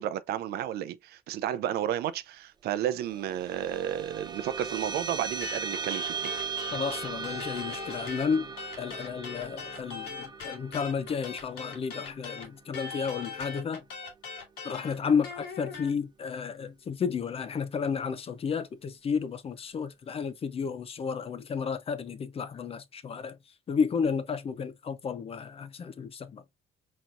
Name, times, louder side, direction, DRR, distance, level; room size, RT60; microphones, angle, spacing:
voice 1, 0.0-6.3, right 11 dB, 70° right, 0.5 m, -32 dB
sound 1, 2.8-13.6, right 6 dB, 25° right, 0.7 m, -39 dB
sound 2, 5.4-8.3 8.6-15.9, left 5 dB, 75° left, 2.3 m, -40 dB
voice 2, 6.7-13.8 14.6-23.4 23.7-26.4, left 6 dB, 35° left, 0.6 m, -32 dB
4.5 x 4.1 x 2.5 m
cardioid pair, 110°, 17 cm